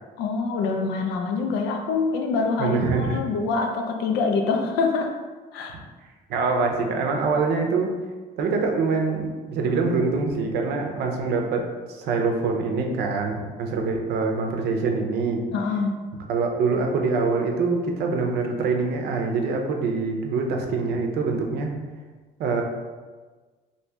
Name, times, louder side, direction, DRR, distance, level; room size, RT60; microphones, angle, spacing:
voice 1, 0.2-5.1 5.5-5.8 15.5-15.9, left 4 dB, 90° left, 3 dB, 0.5 m, -25 dB
voice 2, 2.6-3.2 6.3-7.9 8.4-11.7 12.0-15.4 16.3-21.8 22.4-22.6, right 4 dB, 75° right, 2 dB, 0.6 m, -24 dB
2.8 x 2.7 x 3.3 m, 1.4 s
cardioid pair, 110°, 17 cm